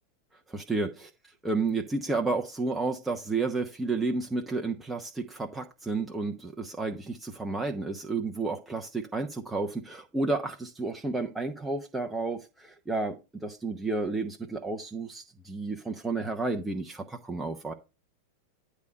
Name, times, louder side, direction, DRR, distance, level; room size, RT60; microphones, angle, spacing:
voice 1, 0.5-1.1 1.4-17.7, right 3 dB, 10° right, 0.8 m, -31 dB
9.4 x 3.4 x 6.6 m
figure-of-eight pair, 90°, 0 cm